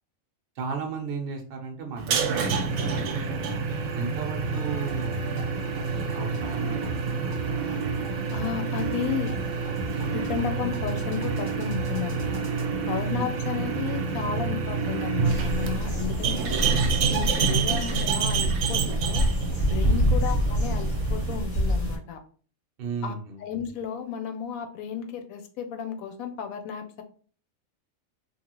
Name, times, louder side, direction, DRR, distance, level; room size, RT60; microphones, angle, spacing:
voice 1, 0.6-3.4 3.9-5.2 5.7-7.5 13.1-13.3 19.8-20.1 22.8-23.4, right 5 dB, 55° right, 2 dB, 0.8 m, -35 dB
sound 1, 2.0-21.4, right 5 dB, 85° right, 1.0 m, -28 dB
sound 2, 4.4-12.6, right 3 dB, 20° right, 0.6 m, -39 dB
voice 2, 8.3-9.3 10.0-12.4 12.9-16.6 17.1-19.2 19.7-22.2 23.0-23.1 23.4-27.0, left 8 dB, 85° left, 7 dB, 1.0 m, -33 dB
sound 3, 15.2-22.0, equal, 35° left, 1.0 m, -26 dB
2.8 x 2.4 x 2.9 m, 0.44 s
omnidirectional pair, 1.4 m